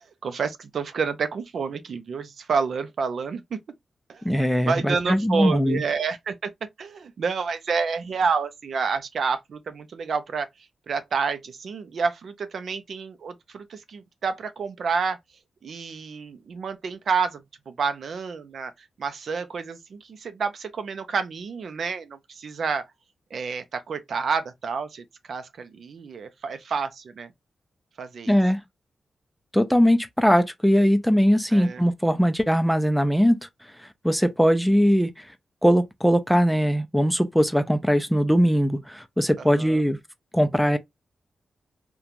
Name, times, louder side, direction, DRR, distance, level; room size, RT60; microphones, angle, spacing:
voice 1, 0.0-3.6 4.1-4.2 4.7-6.5 6.8-10.5 10.9-15.2 15.6-22.9 23.3-27.3 28.0-28.4 31.5-31.8 34.7-34.8 39.4-39.8, right 5 dB, 70° right, 0.5 m, -29 dB
voice 2, 4.2-5.8 28.3-28.6 29.5-33.4 34.0-35.2 35.6-40.0 40.3-40.8, equal, ahead, 0.4 m, -20 dB
3.0 x 2.2 x 2.4 m
wide cardioid pair, 105°, 0 cm